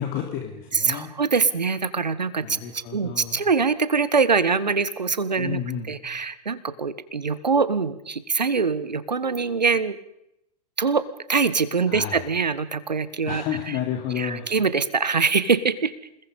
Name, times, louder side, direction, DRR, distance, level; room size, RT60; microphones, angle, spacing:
voice 1, 0.0-1.1 2.4-3.4 5.4-5.9 11.9-12.2 13.2-14.5, left 9 dB, 45° left, 3 dB, 3.2 m, -31 dB
voice 2, 0.7-5.6 5.9-10.0 10.8-11.0 11.3-13.4 14.2-15.9, right 5 dB, 90° right, 15 dB, 1.7 m, -23 dB
28.5 x 20.5 x 5.4 m, 0.81 s
hypercardioid pair, 100°, 21 cm